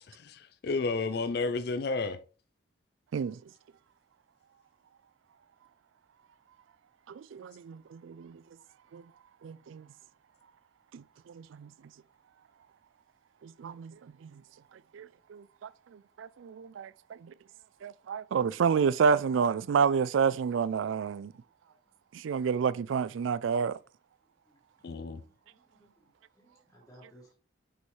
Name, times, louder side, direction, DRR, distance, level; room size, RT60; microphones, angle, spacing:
voice 1, 0.0-2.2 24.8-25.2, left 3 dB, 55° left, 0.4 m, -32 dB
voice 2, 7.1-8.4 8.9-9.0 9.4-9.9 10.9-11.7 13.4-14.4 14.9-17.3 17.8-21.3 22.1-23.8, right 6 dB, 80° right, 0.3 m, -30 dB
voice 3, 25.2-27.3, right 1 dB, 15° left, 1.8 m, -60 dB
6.2 x 5.4 x 3.1 m
head